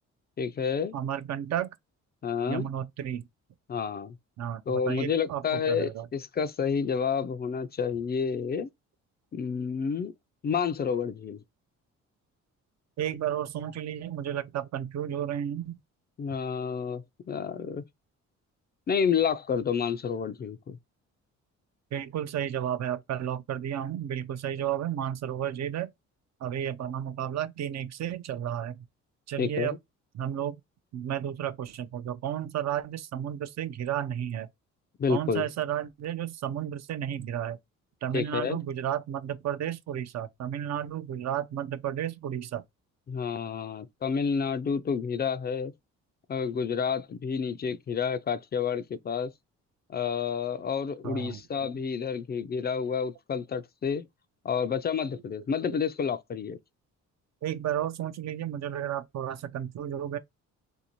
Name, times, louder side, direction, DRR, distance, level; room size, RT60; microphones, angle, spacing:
voice 1, 0.4-0.9 2.2-2.7 3.7-4.1 4.7-8.7 9.3-10.1 10.4-11.4 16.2-17.8 18.9-20.8 29.4-29.7 35.0-35.5 38.1-38.6 43.1-45.7 46.3-49.3 49.9-54.1 54.4-56.6, left 6 dB, 35° left, 0.4 m, -29 dB
voice 2, 0.9-1.7 2.5-3.2 4.4-6.1 13.0-15.8 21.9-25.9 26.4-28.8 29.3-29.8 30.1-30.6 30.9-34.5 35.1-37.6 38.0-42.6 51.0-51.7 57.4-60.2, right 10 dB, 60° right, 0.6 m, -32 dB
3.2 x 2.7 x 2.9 m
cardioid pair, 90°, 30 cm